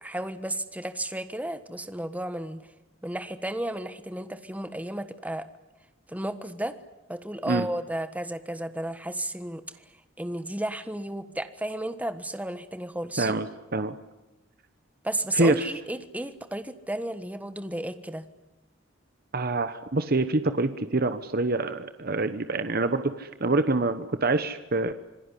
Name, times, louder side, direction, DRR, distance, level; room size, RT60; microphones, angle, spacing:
voice 1, 0.0-2.6 3.0-5.4 6.1-6.7 7.1-9.6 10.2-13.3 15.0-18.2, right 1 dB, 10° right, 10 dB, 1.4 m, -33 dB
voice 2, 13.2-13.9 15.4-15.6 19.3-24.9, right 2 dB, 50° right, 10 dB, 1.2 m, -26 dB
27.0 x 19.5 x 10.0 m, 1.0 s
head